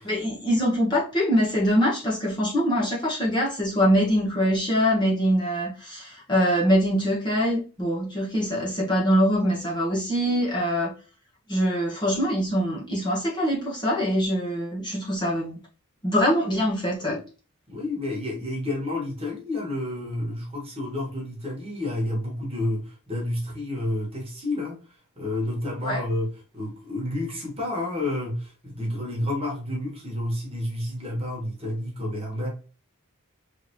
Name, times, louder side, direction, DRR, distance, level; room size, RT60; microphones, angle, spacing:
voice 1, 0.0-10.9 11.5-15.6 16.0-17.2 25.8-26.0, equal, 20° left, 1.3 m, -23 dB
voice 2, 17.7-24.8 25.2-32.5, left 1 dB, 25° right, 1.5 m, -30 dB
3.6 x 3.5 x 3.1 m
head